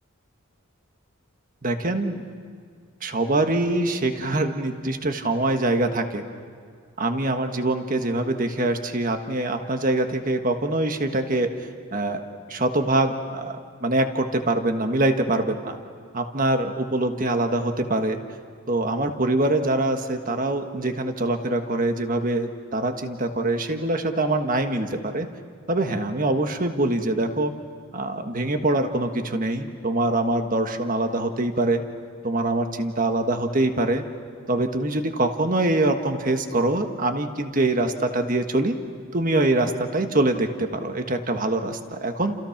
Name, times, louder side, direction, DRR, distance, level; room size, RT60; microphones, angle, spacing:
voice 1, 1.6-2.2 3.0-6.2 7.0-11.5 11.9-15.8 16.1-18.2 18.7-25.3 25.7-27.5 27.9-31.8 32.2-34.0 34.5-38.8 39.1-42.4, right 2 dB, 40° right, 6 dB, 1.5 m, -24 dB
30.0 x 28.0 x 5.9 m, 2.1 s
head